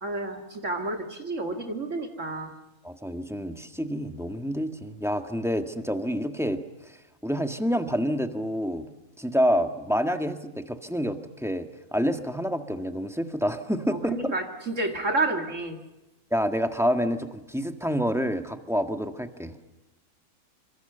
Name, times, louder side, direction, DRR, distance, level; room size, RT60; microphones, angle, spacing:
voice 1, 0.0-2.5 14.1-15.8, right 2 dB, 55° right, 4 dB, 2.6 m, -30 dB
voice 2, 2.8-6.6 7.2-8.9 9.2-14.3 16.3-19.5, equal, ahead, 6 dB, 1.6 m, -28 dB
27.0 x 26.0 x 6.9 m, 0.99 s
omnidirectional pair, 1.5 m